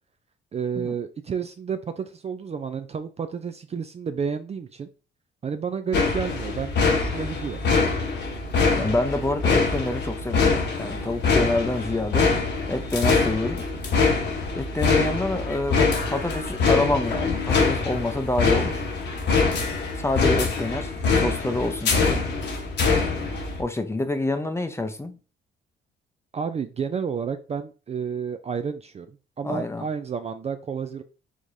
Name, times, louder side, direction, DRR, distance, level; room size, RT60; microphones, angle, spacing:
voice 1, 0.5-4.9 5.4-7.6 26.3-31.0, right 6 dB, 35° right, 0.4 m, -31 dB
sound 1, 5.9-23.6, left 4 dB, 60° left, 1.1 m, -24 dB
voice 2, 8.8-12.3 12.7-13.6 14.5-18.8 20.0-22.2 23.6-25.2 29.4-29.9, left 2 dB, 15° left, 0.6 m, -27 dB
4.8 x 3.6 x 2.7 m
cardioid pair, 90°, 20 cm